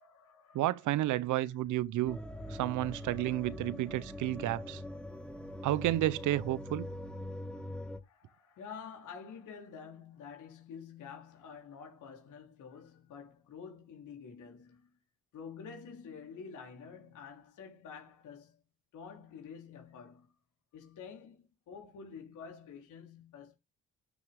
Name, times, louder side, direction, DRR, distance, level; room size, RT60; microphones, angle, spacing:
voice 1, 0.0-1.9 2.3-3.7 4.1-4.5 5.5-5.6 6.9-7.2 8.0-14.9 15.3-18.6 18.9-20.3 20.7-23.6, left 6 dB, 80° left, 3.6 m, -50 dB
voice 2, 0.5-2.2 2.5-4.8 5.6-6.9, right 14 dB, 80° right, 0.7 m, -31 dB
sound 1, 2.0-8.0, left 1 dB, 5° left, 1.8 m, -43 dB
12.0 x 6.2 x 3.5 m
cardioid pair, 90°, 30 cm